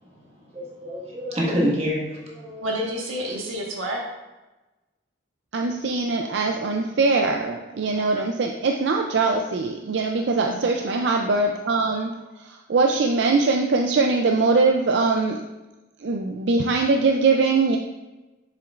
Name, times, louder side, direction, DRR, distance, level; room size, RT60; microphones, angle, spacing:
voice 1, 0.1-2.7, equal, 30° right, -4 dB, 1.6 m, -27 dB
voice 2, 2.6-4.0 10.4-10.7, equal, 90° right, -1 dB, 1.5 m, -29 dB
voice 3, 5.5-15.4 16.0-17.8, right 3 dB, 60° right, 2 dB, 0.4 m, -22 dB
7.5 x 7.0 x 2.5 m, 1.1 s
head